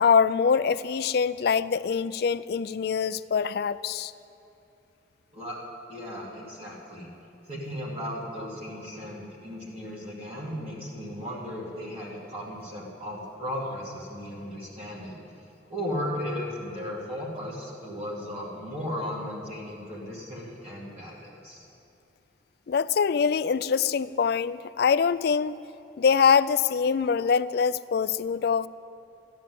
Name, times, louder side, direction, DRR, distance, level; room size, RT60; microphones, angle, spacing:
voice 1, 0.0-4.1 22.7-25.6 26.0-28.7, left 6 dB, 55° left, 16 dB, 0.4 m, -24 dB
voice 2, 5.9-7.1 7.5-15.2 15.7-21.6, equal, 35° right, -5 dB, 2.3 m, -36 dB
14.0 x 10.5 x 7.6 m, 2.8 s
head